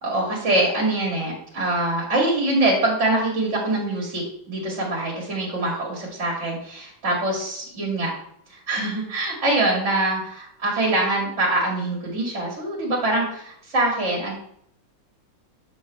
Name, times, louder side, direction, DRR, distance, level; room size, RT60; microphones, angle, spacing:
voice 1, 0.0-8.1 8.5-14.3, right 2 dB, 40° right, -3 dB, 2.1 m, -24 dB
6.4 x 6.2 x 3.2 m, 0.68 s
omnidirectional pair, 2.1 m